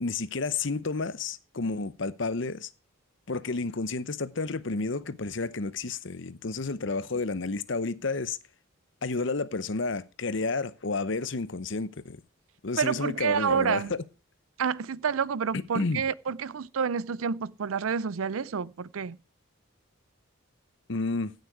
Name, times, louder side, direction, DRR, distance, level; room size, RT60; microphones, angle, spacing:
voice 1, 0.0-2.7 3.3-8.4 9.0-12.2 12.6-14.0 15.7-16.0 20.9-21.3, left 3 dB, 60° left, 0.8 m, -31 dB
voice 2, 12.8-13.9 14.6-19.2, right 6 dB, 75° right, 0.5 m, -29 dB
16.0 x 6.7 x 4.8 m
head